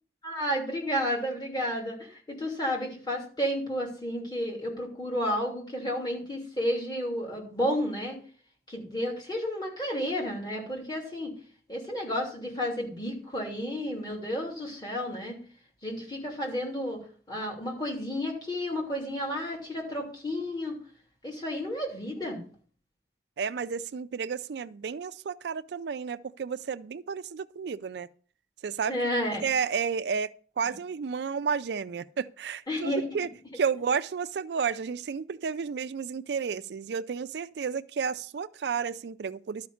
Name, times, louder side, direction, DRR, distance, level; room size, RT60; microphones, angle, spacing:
voice 1, 0.2-8.2 8.7-11.3 11.7-15.4 15.8-17.0 17.3-20.8 21.2-22.4 28.9-29.4 32.7-33.0, equal, 25° left, 2.9 m, -31 dB
voice 2, 23.4-28.1 28.6-29.0 29.4-33.3 33.5-39.7, right 6 dB, 75° right, 0.4 m, -32 dB
12.0 x 5.2 x 7.0 m
head